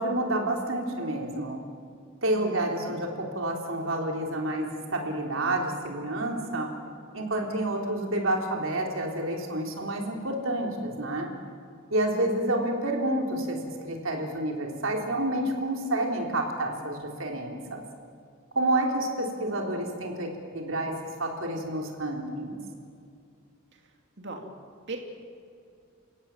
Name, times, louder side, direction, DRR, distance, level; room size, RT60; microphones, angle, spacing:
voice 1, 0.0-1.6 2.2-6.7 7.1-11.3 11.9-17.8 18.6-22.6, right 1 dB, 80° right, 1 dB, 3.7 m, -29 dB
voice 2, 2.3-2.9 23.7-24.5 24.9-25.0, right 3 dB, 60° right, 2 dB, 2.8 m, -40 dB
30.0 x 17.0 x 7.4 m, 2.4 s
head